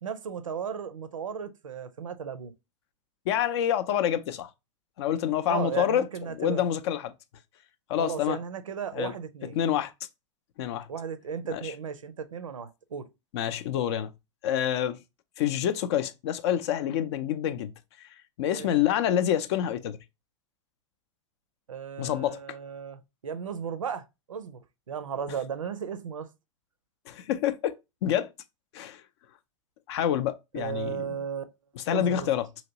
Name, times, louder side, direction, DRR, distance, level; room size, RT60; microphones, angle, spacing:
voice 1, 0.0-2.5 5.5-6.6 8.0-9.6 10.9-13.1 18.5-18.7 21.7-24.6 24.9-26.3 30.5-31.4 31.9-32.3, right 7 dB, 90° right, 0.5 m, -35 dB
voice 2, 3.3-4.5 5.0-6.0 6.4-7.1 7.9-8.4 8.9-9.1 9.6-9.9 10.6-10.9 11.5-11.7 13.3-14.1 14.4-15.0 15.4-17.7 18.0-18.1 18.4-20.0 22.0-22.4 27.1-27.8 28.0-28.3 28.7-29.0 29.9-31.2 31.8-32.5, left 10 dB, 55° left, 0.4 m, -27 dB
2.9 x 2.8 x 2.7 m
hypercardioid pair, 105°, 16 cm